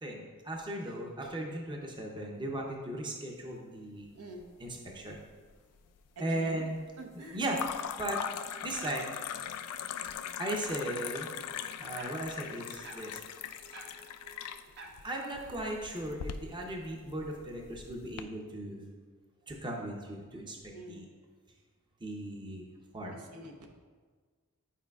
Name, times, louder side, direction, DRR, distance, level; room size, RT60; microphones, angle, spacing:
voice 1, 0.0-4.1 4.6-5.2 6.2-6.8 7.1-7.6 8.0-8.2 8.6-9.1 10.4-11.3 11.8-13.2 15.0-18.9 19.5-21.1 22.0-22.6 22.9-23.2, right 1 dB, 20° right, 0 dB, 0.7 m, -37 dB
sound 1, 4.4-5.1 5.4-6.1 7.5-18.2, left 8 dB, 75° left, 0.3 m, -41 dB
voice 2, 6.2-6.7 7.0-7.4 20.7-21.1 23.1-23.7, right 2 dB, 75° right, 2 dB, 0.8 m, -46 dB
sound 2, 8.1-15.7, right 2 dB, 50° right, 0.9 m, -54 dB
10.0 x 4.8 x 2.3 m, 1.5 s
head